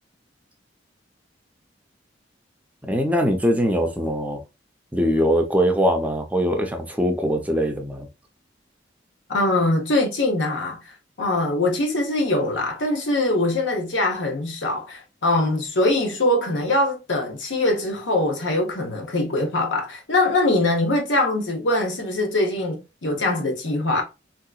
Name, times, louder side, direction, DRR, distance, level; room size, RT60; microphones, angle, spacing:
voice 1, 2.8-4.4 4.9-8.1, equal, 10° right, 0.5 m, -22 dB
voice 2, 9.3-10.8 11.2-24.0, left 2 dB, 80° left, 0.9 m, -22 dB
3.4 x 2.8 x 2.3 m
head